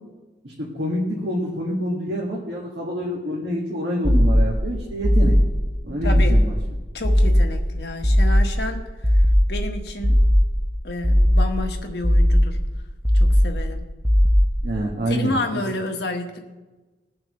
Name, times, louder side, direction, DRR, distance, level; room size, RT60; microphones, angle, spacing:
voice 1, 0.4-5.3 5.8-6.5 14.6-15.6, right 1 dB, 75° right, -5 dB, 2.0 m, -27 dB
sound 1, 4.0-4.7 5.0-5.7 6.0-6.7 7.0-7.7 8.0-8.7 9.0-9.7 10.0-10.7 11.0-11.7 12.0-12.7 13.0-13.7 14.0-14.7, equal, 5° right, 0.7 m, -17 dB
voice 2, 6.0-6.4 6.9-9.2 9.5-10.2 10.8-12.6 13.1-13.9 15.1-16.4, left 2 dB, 65° left, 3 dB, 1.5 m, -30 dB
21.5 x 7.3 x 3.2 m, 1.2 s
head